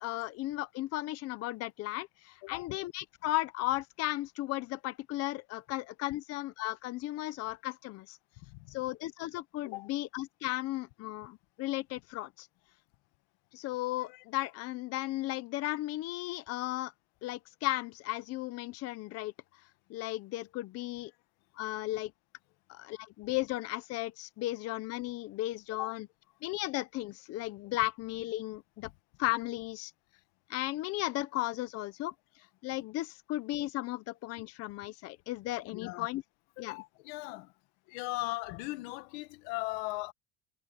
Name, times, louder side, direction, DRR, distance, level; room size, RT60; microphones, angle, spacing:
voice 1, 0.0-8.2 8.7-12.5 13.5-16.9 17.2-19.3 19.9-21.1 21.6-22.1 22.7-26.1 26.4-28.9 29.2-29.9 30.5-32.1 32.6-36.2 36.6-36.8, left 17 dB, 40° left, 0.6 m, -35 dB
voice 2, 35.7-36.1 36.6-37.5 37.9-40.1, left 22 dB, 80° left, 1.5 m, -38 dB
cardioid pair, 170°, 38 cm